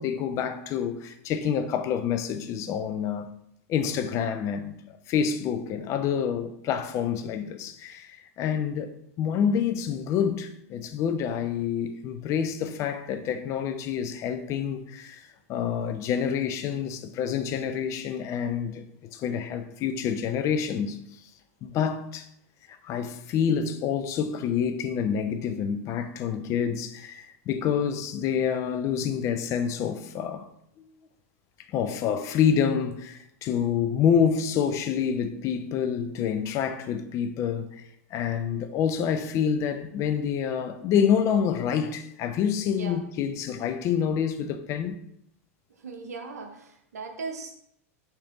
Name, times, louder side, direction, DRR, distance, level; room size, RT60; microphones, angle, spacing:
voice 1, 0.0-3.3 3.7-4.8 5.1-18.8 19.1-21.0 21.6-22.3 22.7-30.5 31.7-37.8 38.1-45.0, left 7 dB, 40° left, 0.4 m, -27 dB
voice 2, 42.6-43.0 45.8-47.6, right 4 dB, 90° right, 0.7 m, -38 dB
3.3 x 2.9 x 3.7 m
hypercardioid pair, 105°, 8 cm